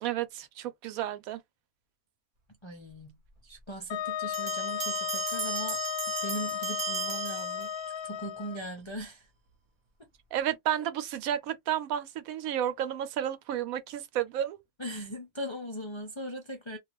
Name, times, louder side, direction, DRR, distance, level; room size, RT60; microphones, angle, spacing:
voice 1, 0.0-1.4 10.3-14.6, right 11 dB, 75° right, 1.0 m, -32 dB
voice 2, 2.6-3.2 3.4-5.8 6.2-7.7 8.0-9.3 14.8-16.8, equal, 50° left, 0.3 m, -39 dB
Wind instrument woodwind instrument, 3.9-8.6, left 10 dB, 90° left, 1.1 m, -34 dB
Bell, 4.3-8.1, right 6 dB, 40° right, 0.9 m, -36 dB
2.5 x 2.3 x 3.0 m
omnidirectional pair, 1.5 m